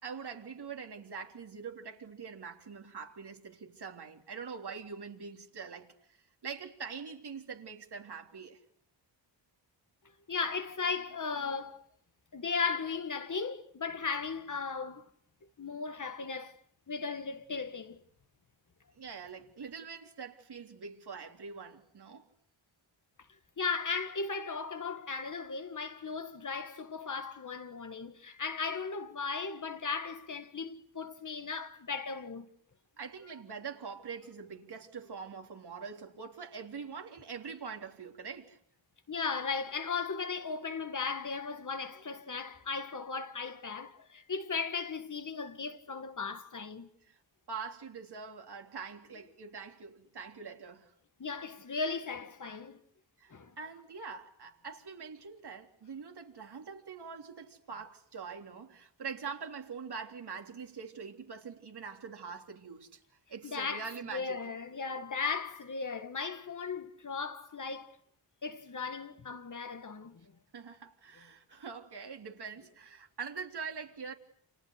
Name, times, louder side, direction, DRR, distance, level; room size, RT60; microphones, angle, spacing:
voice 1, 0.0-8.6 19.0-22.3 33.0-38.6 47.0-47.2 47.5-50.9 53.2-63.0 63.3-64.4 70.5-74.1, right 5 dB, 60° right, 3.5 m, -44 dB
voice 2, 10.3-11.8 12.3-15.1 15.6-16.6 16.9-18.0 23.6-32.5 39.1-46.9 51.2-52.8 53.3-53.5 63.4-68.0 68.4-70.3, left 5 dB, 45° left, 1.7 m, -36 dB
30.0 x 29.5 x 6.6 m
wide cardioid pair, 130°, 44 cm